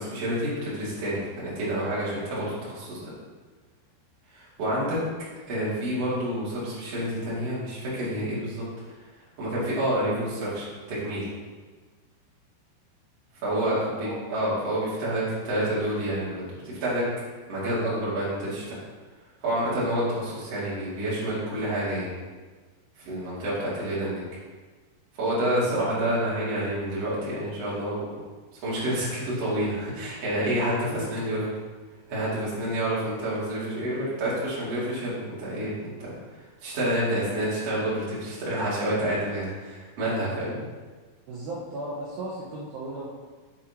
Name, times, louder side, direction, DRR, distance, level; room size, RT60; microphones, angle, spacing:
voice 1, 0.0-3.1 4.3-5.0 5.5-8.6 9.4-11.3 13.4-17.1 17.5-18.8 19.4-22.1 23.0-24.2 25.1-28.0 28.6-31.5 32.1-36.1 36.6-40.6, right 1 dB, 40° right, -9 dB, 3.1 m, -28 dB
voice 2, 13.5-14.2 25.5-26.2 30.9-31.3 41.3-43.1, right 2 dB, 85° right, -6 dB, 1.7 m, -36 dB
7.8 x 7.6 x 3.0 m, 1.4 s
omnidirectional pair, 5.0 m